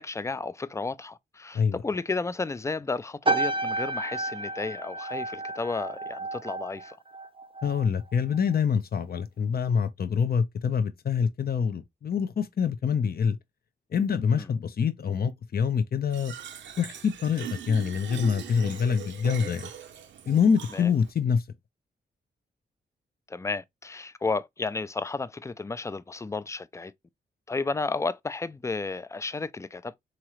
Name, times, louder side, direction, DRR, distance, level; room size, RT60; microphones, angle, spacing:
voice 1, 0.0-7.0 14.3-14.5 20.7-20.9 23.3-26.9 27.5-30.0, left 3 dB, 15° left, 0.4 m, -32 dB
sound 1, 3.2-7.9 8.1-8.5, right 2 dB, 30° right, 0.6 m, -31 dB
voice 2, 7.6-13.4 13.9-16.3 16.8-19.7 20.3-21.4, left 6 dB, 55° left, 0.7 m, -25 dB
Fill (with liquid), 16.1-21.1, right 9 dB, 80° right, 0.7 m, -41 dB
3.8 x 3.0 x 3.0 m
cardioid pair, 55°, 19 cm